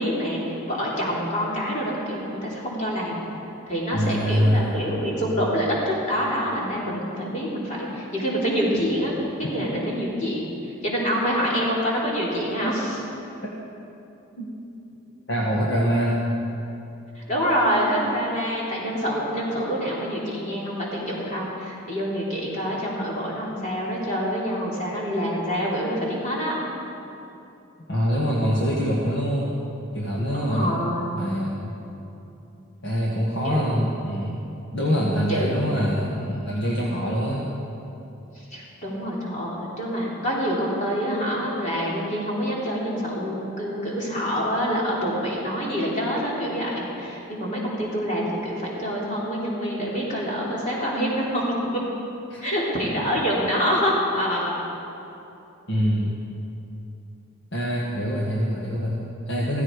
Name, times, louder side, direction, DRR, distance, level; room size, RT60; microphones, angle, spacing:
voice 1, 0.0-3.2 3.7-9.1 9.4-10.5 10.8-13.0 17.2-26.6 30.3-31.3 33.4-33.6 34.9-36.0 38.3-51.5 51.7-51.8 52.4-54.6, equal, 35° left, -5 dB, 3.4 m, -26 dB
voice 2, 3.9-4.9 13.4-13.5 14.4-14.5 15.3-16.3 27.9-29.5 29.9-30.8 31.2-31.7 32.8-34.4 34.7-37.5 52.3-52.6 55.7-56.1 57.5-59.6, equal, 55° left, -4 dB, 1.6 m, -24 dB
15.5 x 15.0 x 4.8 m, 2.8 s
head